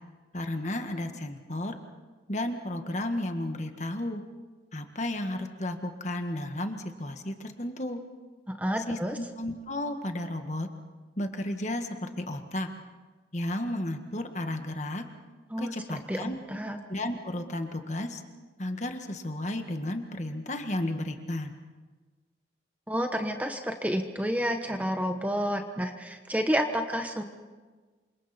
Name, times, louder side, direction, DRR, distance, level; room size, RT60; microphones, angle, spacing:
voice 1, 0.3-1.7 2.3-4.2 4.7-8.0 8.9-10.7 11.2-12.7 13.3-15.0 15.6-16.4 16.9-18.2 18.6-21.5, left 1 dB, 40° left, 6 dB, 1.7 m, -33 dB
voice 2, 8.6-9.2 15.5-15.7 16.1-16.2 16.5-16.8 22.9-27.2, equal, 10° right, 5 dB, 1.2 m, -29 dB
28.0 x 26.0 x 4.4 m, 1.4 s
head